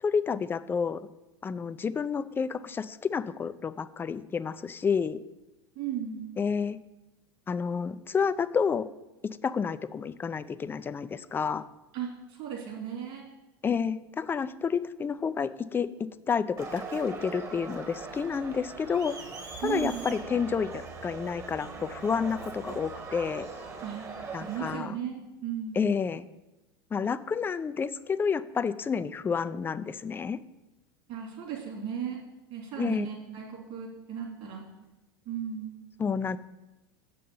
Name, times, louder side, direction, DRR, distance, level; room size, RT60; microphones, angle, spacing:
voice 1, 0.0-1.0 1.4-5.2 6.4-6.8 7.5-8.9 9.4-11.6 13.6-15.9 16.3-19.1 19.6-23.5 24.3-25.0 25.7-26.2 26.9-30.4 32.8-33.1 36.0-36.4, left 6 dB, 15° left, 14 dB, 0.4 m, -30 dB
voice 2, 5.7-6.3 11.9-12.1 12.4-13.3 19.6-20.0 23.8-24.1 24.4-25.8 31.1-32.2 32.5-34.6 35.3-35.7, right 8 dB, 50° right, -2 dB, 3.3 m, -35 dB
Crowd, 16.6-24.8, right 4 dB, 25° right, 1.4 m, -41 dB
7.4 x 5.5 x 7.0 m, 1.0 s
figure-of-eight pair, 80°, 13 cm